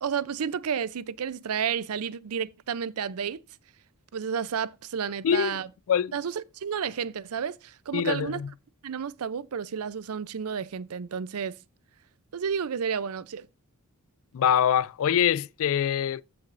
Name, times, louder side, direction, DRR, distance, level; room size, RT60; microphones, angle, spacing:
voice 1, 0.0-3.4 4.1-5.7 6.1-8.4 8.8-11.6 12.3-13.5, right 7 dB, 70° right, 0.5 m, -31 dB
voice 2, 5.2-5.6 5.9-6.1 7.9-8.5 14.3-16.2, left 9 dB, 65° left, 0.4 m, -24 dB
14.5 x 5.8 x 2.5 m
head